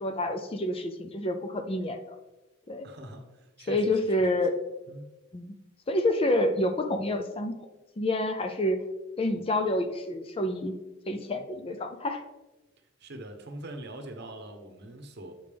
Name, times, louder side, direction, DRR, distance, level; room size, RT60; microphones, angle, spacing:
voice 1, 0.0-2.2 2.7-2.9 3.7-4.6 5.3-5.6 5.9-7.5 8.0-8.8 9.2-10.7 11.1-12.2, left 1 dB, 25° left, 7 dB, 0.4 m, -28 dB
voice 2, 2.8-4.0 4.9-5.1 13.0-15.3, right 1 dB, 50° right, 5 dB, 0.9 m, -43 dB
7.6 x 5.1 x 3.4 m, 1.1 s
head